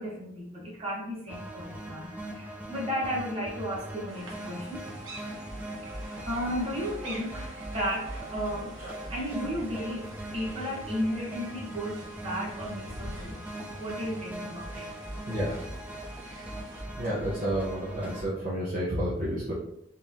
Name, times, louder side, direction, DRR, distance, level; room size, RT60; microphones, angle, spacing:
voice 1, 0.0-4.8 5.9-13.4 13.8-14.9, equal, 30° right, -6 dB, 1.2 m, -34 dB
sound 1, 1.3-18.3, right 1 dB, 10° right, 0.5 m, -40 dB
sound 2, 4.1-16.8, right 1 dB, 85° right, 1.2 m, -47 dB
voice 2, 17.0-19.5, equal, 45° right, -8 dB, 1.0 m, -30 dB
3.9 x 3.3 x 2.8 m, 0.80 s
head